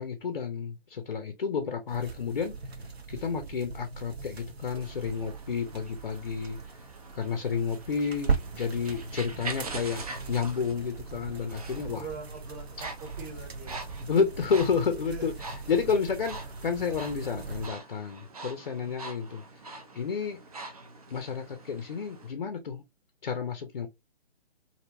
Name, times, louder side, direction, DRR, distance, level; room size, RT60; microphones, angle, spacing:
voice 1, 0.0-2.5 3.1-6.6 7.1-12.1 14.1-16.4 16.6-19.4 20.0-20.4 21.1-22.8 23.2-23.9, left 6 dB, 50° left, 0.5 m, -30 dB
sound 1, 1.9-17.7, right 4 dB, 75° right, 0.7 m, -39 dB
sound 2, 4.6-22.3, right 3 dB, 35° right, 0.4 m, -45 dB
voice 2, 11.9-13.8 15.1-15.3, right 3 dB, 20° right, 0.8 m, -43 dB
2.7 x 2.1 x 2.6 m
figure-of-eight pair, 130°, 32 cm